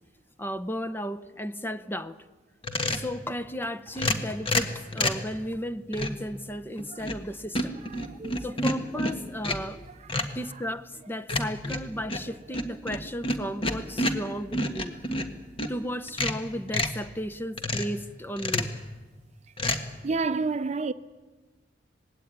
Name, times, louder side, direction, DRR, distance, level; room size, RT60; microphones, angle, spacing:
voice 1, 0.4-2.2 2.9-7.8 8.4-9.8 10.3-14.9 15.7-18.7, equal, 10° left, 0.7 m, -34 dB
sound 1, 2.6-3.1 4.0-5.3 5.9-6.3 6.8-7.3 7.5-9.7 10.1-10.4 11.3-15.7 16.1-17.0 17.6-18.0 18.4-18.8 19.6-19.8, left 1 dB, 30° left, 1.6 m, -29 dB
voice 2, 7.9-8.5 10.1-10.3 20.0-20.9, right 4 dB, 40° right, 0.6 m, -30 dB
20.0 x 16.5 x 9.7 m
head